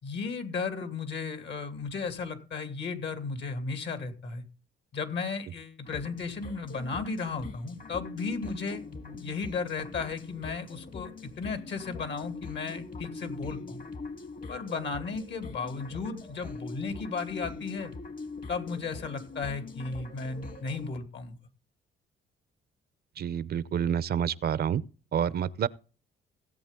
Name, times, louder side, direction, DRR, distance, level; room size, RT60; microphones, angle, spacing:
voice 1, 0.0-4.4 4.9-8.8 9.2-11.1 11.4-13.8 14.5-17.9 18.5-21.4, left 4 dB, 65° left, 2.4 m, -35 dB
sound 1, 5.9-20.9, left 4 dB, 45° left, 1.7 m, -42 dB
voice 2, 23.2-24.8 25.1-25.7, right 8 dB, 50° right, 0.6 m, -28 dB
17.0 x 8.2 x 3.7 m
cardioid pair, 90°, 20 cm